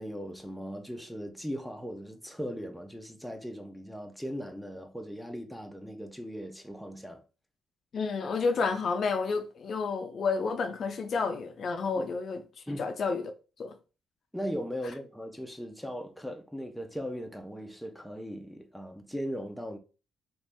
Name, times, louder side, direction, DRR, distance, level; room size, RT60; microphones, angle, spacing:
voice 1, 0.0-7.2 12.0-12.1 12.7-12.9 14.3-19.8, equal, ahead, 0.6 m, -38 dB
voice 2, 7.9-13.3 13.6-13.7, left 4 dB, 55° left, 0.5 m, -30 dB
2.9 x 2.7 x 3.4 m
cardioid pair, 90°, 0 cm